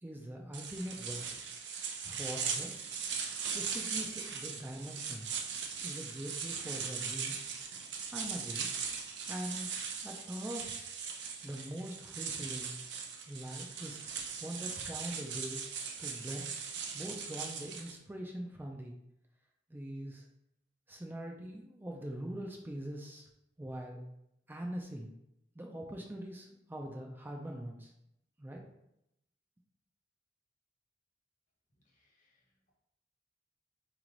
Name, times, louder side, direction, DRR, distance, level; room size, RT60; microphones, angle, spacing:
voice 1, 0.0-1.2 2.0-2.9 3.5-5.4 5.8-7.5 8.1-8.7 9.3-9.7 10.0-11.0 11.4-12.7 13.3-15.6 16.0-16.5 16.9-19.0 19.7-20.3 20.9-23.3 23.6-24.0 24.5-25.1 25.5-27.9 28.4-28.7, right 1 dB, 10° right, 1 dB, 0.4 m, -43 dB
sound 1, 0.5-18.0, right 6 dB, 75° right, 0.6 m, -39 dB
voice 2, 31.8-32.7, left 2 dB, 50° left, -2 dB, 1.2 m, -75 dB
4.1 x 3.1 x 3.8 m, 0.81 s
head